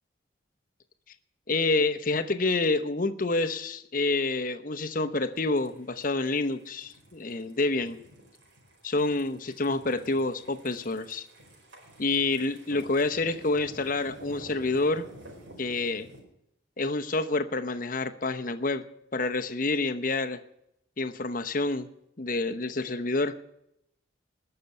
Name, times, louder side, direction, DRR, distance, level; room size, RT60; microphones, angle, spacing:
voice 1, 1.5-8.0 8.8-11.3 12.0-15.1 15.6-16.1 16.8-18.8 19.1-20.4 21.0-21.9 22.2-23.4, left 3 dB, 45° left, 9 dB, 0.9 m, -28 dB
sound 1, 5.3-16.2, right 1 dB, 80° right, 4.8 m, -50 dB
20.0 x 6.8 x 6.6 m, 0.80 s
head